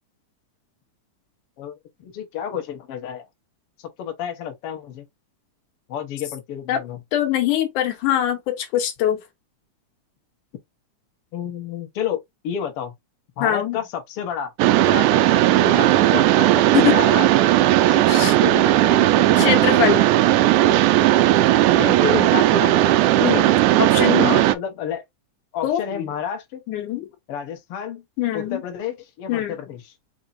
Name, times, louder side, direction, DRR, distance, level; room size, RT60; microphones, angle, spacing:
voice 1, 2.0-3.3 3.8-5.1 5.9-7.0 11.3-12.9 13.4-14.5 14.9-17.3 17.9-19.5 21.8-22.9 23.2-23.5 24.2-25.0 25.5-26.6 27.3-28.0 28.3-29.9, left 8 dB, 60° left, 1.8 m, -30 dB
voice 2, 7.1-9.2 13.4-13.8 16.7-17.0 18.1-18.3 19.4-20.1 23.2-23.4 23.9-24.4 25.6-26.1 26.7-27.1 28.2-28.6 29.3-29.5, left 12 dB, 85° left, 2.4 m, -22 dB
Mechanisms, 14.6-24.6, right 14 dB, 85° right, 2.0 m, -16 dB
5.4 x 3.5 x 2.5 m
omnidirectional pair, 3.5 m